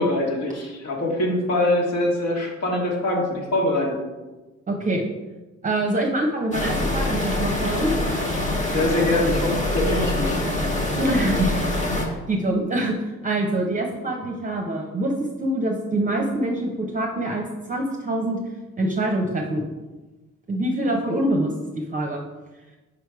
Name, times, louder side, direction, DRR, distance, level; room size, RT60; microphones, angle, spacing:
voice 1, 0.0-4.0 8.6-10.4, left 1 dB, 60° left, -2 dB, 1.6 m, -23 dB
voice 2, 4.7-5.0 5.6-7.9 10.9-13.0 13.2-18.4 18.8-19.6 20.5-21.5 21.8-22.2, right 1 dB, 25° right, 1 dB, 0.7 m, -25 dB
sound 1, 6.5-12.0, left 1 dB, 25° left, 1.2 m, -24 dB
5.0 x 4.5 x 4.7 m, 1.2 s
cardioid pair, 90°, 30 cm